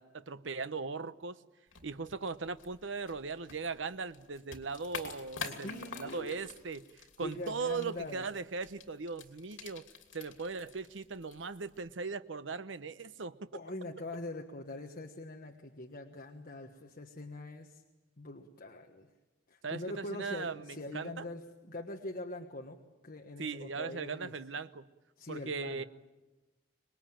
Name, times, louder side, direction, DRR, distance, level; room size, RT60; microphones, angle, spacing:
voice 1, 0.0-1.4 1.8-6.9 7.2-9.8 10.1-13.4 19.6-21.3 23.4-24.9 25.3-25.8, right 4 dB, 75° right, 13 dB, 0.9 m, -39 dB
sound 1, 1.7-11.9, left 5 dB, 80° left, 2.9 m, -48 dB
voice 2, 5.4-6.5 7.2-8.3 13.5-17.8 18.2-19.1 19.5-22.8 23.0-24.3 25.2-25.8, left 2 dB, 50° left, 3 dB, 1.4 m, -43 dB
25.5 x 21.0 x 9.0 m, 1.1 s
head